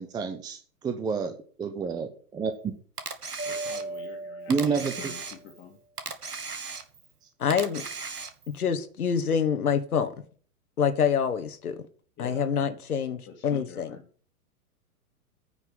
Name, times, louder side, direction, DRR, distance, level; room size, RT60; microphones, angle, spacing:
voice 1, 0.0-2.1 2.4-2.7 4.5-5.1, right 5 dB, 10° right, 0.6 m, -29 dB
Camera, 3.0-4.1 4.5-5.6 6.0-7.1 7.5-8.6, right 4 dB, 80° right, 1.7 m, -37 dB
voice 2, 3.4-5.8 12.2-12.6 13.3-14.0, left 6 dB, 25° left, 2.1 m, -46 dB
Mallet percussion, 3.4-5.4, right 2 dB, 60° right, 5.5 m, -37 dB
voice 3, 7.4-7.8 8.5-10.1 10.8-11.8 12.2-14.0, left 7 dB, 70° left, 1.3 m, -26 dB
9.9 x 5.9 x 7.5 m
figure-of-eight pair, 110°, 45 cm